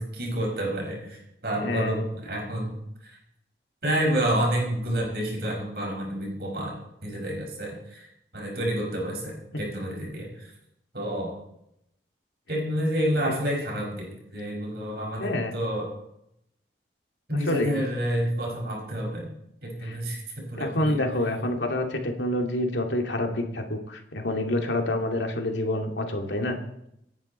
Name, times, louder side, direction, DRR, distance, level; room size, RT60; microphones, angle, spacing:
voice 1, 0.0-2.7 3.0-3.2 3.8-8.1 8.3-10.5 10.9-11.4 12.5-15.9 17.3-19.3 19.6-21.0, right 1 dB, 60° right, -1 dB, 5.9 m, -29 dB
voice 2, 1.6-2.0 13.3-13.4 15.2-15.5 17.3-17.8 19.8-20.0 20.6-26.6, left 1 dB, 85° left, 3 dB, 2.5 m, -27 dB
27.5 x 10.0 x 4.4 m, 0.79 s
head